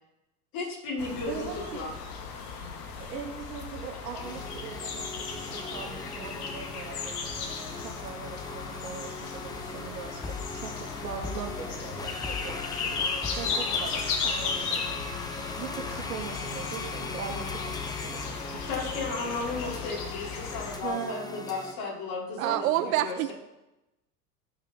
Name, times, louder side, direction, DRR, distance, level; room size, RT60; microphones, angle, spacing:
voice 1, 0.5-1.9 18.7-23.3, left 3 dB, 45° left, -2 dB, 4.1 m, -34 dB
sound 1, 1.0-20.8, left 5 dB, 65° left, 1.8 m, -35 dB
voice 2, 1.3-1.9 2.9-7.2 7.7-18.9 20.8-21.6 22.4-23.0, right 6 dB, 75° right, 0 dB, 2.9 m, -40 dB
sound 2, 4.2-21.7, left 3 dB, 10° left, 0.9 m, -40 dB
voice 3, 22.4-23.3, right 14 dB, 60° right, 13 dB, 0.5 m, -26 dB
17.5 x 6.4 x 4.1 m, 0.97 s
figure-of-eight pair, 80°, 48 cm